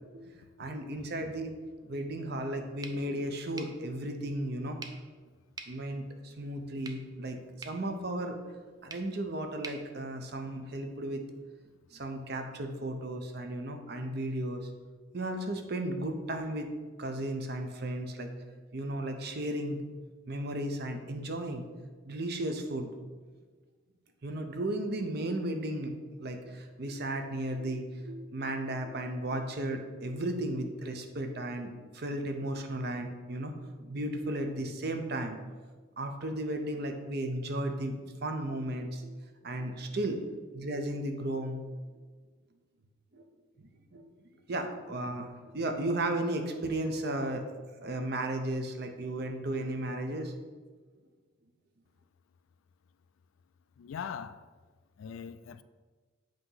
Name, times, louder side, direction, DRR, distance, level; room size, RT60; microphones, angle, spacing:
voice 1, 0.6-4.8 5.7-8.4 8.8-11.2 11.9-14.7 15.1-16.7 17.0-18.3 18.7-19.8 20.3-21.6 22.1-22.9 24.2-35.4 36.0-39.2 39.4-40.2 40.5-41.6 43.1-43.3 43.9-44.1 44.5-47.4 47.8-50.3, right 1 dB, 50° right, 0.7 m, -35 dB
sound 1, 2.8-10.9, right 4 dB, 20° right, 0.4 m, -50 dB
voice 2, 53.8-54.4 55.0-55.6, left 7 dB, 75° left, 0.3 m, -40 dB
7.7 x 2.9 x 5.5 m
head